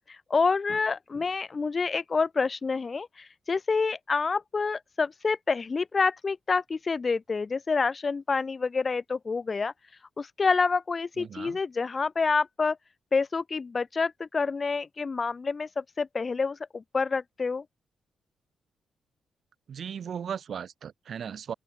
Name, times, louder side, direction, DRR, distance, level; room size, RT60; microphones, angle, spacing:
voice 1, 0.3-9.7 10.2-12.8 13.1-17.6, left 4 dB, 30° left, 1.7 m, -28 dB
voice 2, 11.2-11.6 19.7-21.5, right 7 dB, 50° right, 7.4 m, -37 dB
open air
wide cardioid pair, 160°, 0 cm